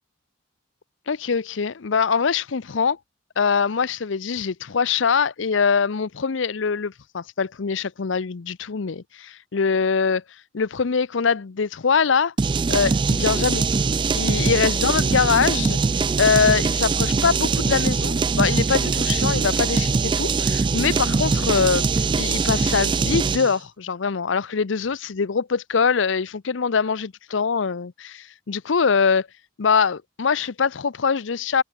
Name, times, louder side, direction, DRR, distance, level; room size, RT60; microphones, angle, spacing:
voice 1, 1.1-3.0 3.4-10.2 10.5-12.3 12.7-13.6 14.1-15.8 16.2-21.9 22.2-29.3 29.6-31.6, left 5 dB, 75° left, 0.6 m, -23 dB
sound 1, 12.4-23.5, right 4 dB, 25° right, 0.3 m, -22 dB
head